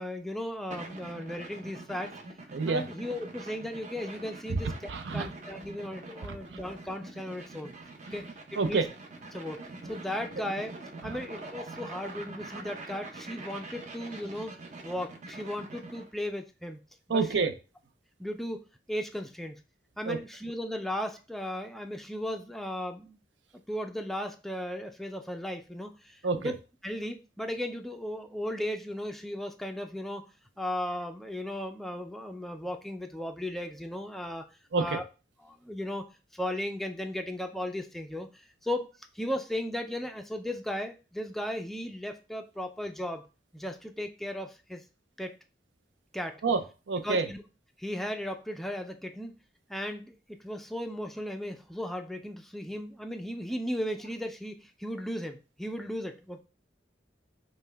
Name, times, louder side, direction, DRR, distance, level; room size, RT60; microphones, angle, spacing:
voice 1, 0.0-2.1 2.7-4.7 5.1-7.7 8.1-8.2 8.6-8.8 9.3-9.6 9.9-10.7 11.0-14.5 14.8-16.8 17.1-17.2 18.2-18.6 18.9-19.6 20.0-23.2 23.7-26.5 26.8-30.3 30.6-34.4 34.8-35.0 35.4-36.0 36.3-38.9 39.1-43.2 43.5-44.8 45.2-45.4 46.1-46.4 47.0-47.4 47.8-49.3 49.7-56.4, left 1 dB, ahead, 5 dB, 0.3 m, -36 dB
sound 1, 0.7-16.1, right 2 dB, 40° right, 0.7 m, -44 dB
voice 2, 2.5-2.8 4.5-4.6 4.9-5.3 6.5-6.6 8.6-8.9 11.0-11.2 17.1-17.5 20.1-20.2 26.2-26.5 34.7-35.0 46.4-47.3, right 4 dB, 85° right, 9 dB, 0.5 m, -28 dB
5.3 x 2.2 x 3.3 m, 0.32 s
head